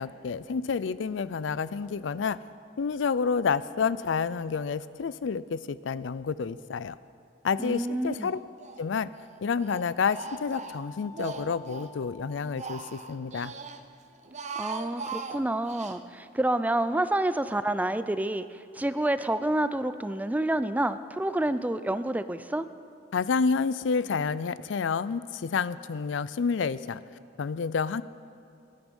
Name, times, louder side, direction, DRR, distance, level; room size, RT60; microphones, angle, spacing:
voice 1, 0.0-2.4 2.8-7.0 7.4-8.4 8.8-9.1 9.4-13.5 23.1-27.0 27.4-28.0, left 5 dB, 90° left, 17 dB, 0.4 m, -29 dB
voice 2, 7.6-8.3 14.6-22.7, right 1 dB, 10° right, 12 dB, 0.4 m, -28 dB
Speech, 8.1-8.8 9.1-11.9 12.3-13.8 14.2-16.0, right 4 dB, 40° right, 0.7 m, -40 dB
sound 1, 9.8-13.1, left 3 dB, 15° left, 1.6 m, -50 dB
21.0 x 10.5 x 5.4 m, 2.4 s
head